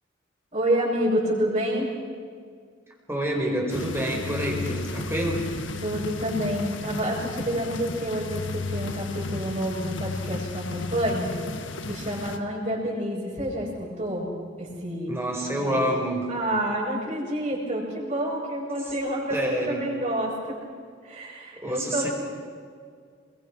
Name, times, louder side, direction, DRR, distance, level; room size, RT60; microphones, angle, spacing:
voice 1, 0.5-1.9 5.8-11.3 11.8-14.3 14.6-15.1 15.6-15.8 16.3-20.6 21.0-22.1, right 1 dB, 35° right, -8 dB, 7.4 m, -28 dB
voice 2, 3.1-5.5 15.1-16.3 19.3-19.9 21.6-22.1, right 1 dB, 15° right, -1 dB, 5.2 m, -27 dB
sound 1, 3.7-12.4, left 3 dB, 75° left, 1.7 m, -33 dB
28.5 x 22.5 x 6.3 m, 2.1 s
head